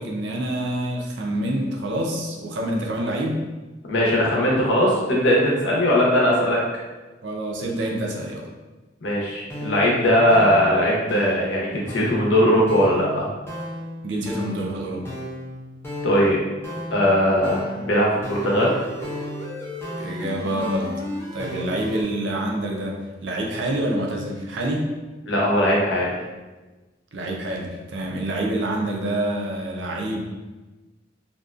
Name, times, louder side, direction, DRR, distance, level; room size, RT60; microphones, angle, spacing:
voice 1, 0.0-3.4 7.2-8.5 14.0-15.1 20.0-20.9 21.3-24.9 27.1-30.2, right 1 dB, 70° right, 0 dB, 0.4 m, -27 dB
voice 2, 3.9-6.6 9.0-13.2 16.0-16.4 16.9-18.7 25.3-26.1, equal, 75° left, -4 dB, 0.7 m, -19 dB
sound 1, 9.4-22.0, left 1 dB, 15° left, 0.4 m, -34 dB
2.5 x 2.2 x 2.3 m, 1.2 s
head